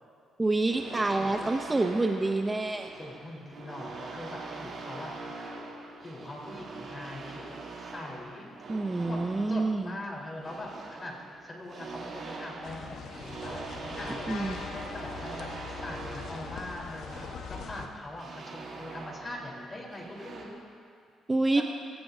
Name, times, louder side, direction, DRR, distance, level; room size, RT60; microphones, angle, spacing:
voice 1, 0.4-2.9 8.7-9.9 14.3-14.6 21.3-21.6, right 2 dB, 20° right, 5 dB, 0.7 m, -27 dB
sound 1, 0.7-20.5, right 3 dB, 55° right, 2.8 m, -43 dB
voice 2, 1.1-1.8 3.0-5.2 6.0-8.5 9.1-14.4 14.9-20.6 21.6-21.7, left 1 dB, 30° left, -2 dB, 3.8 m, -42 dB
sound 2, 12.6-17.9, left 6 dB, 70° left, 1.2 m, -41 dB
20.5 x 16.5 x 2.7 m, 2.2 s
cardioid pair, 90°, 0 cm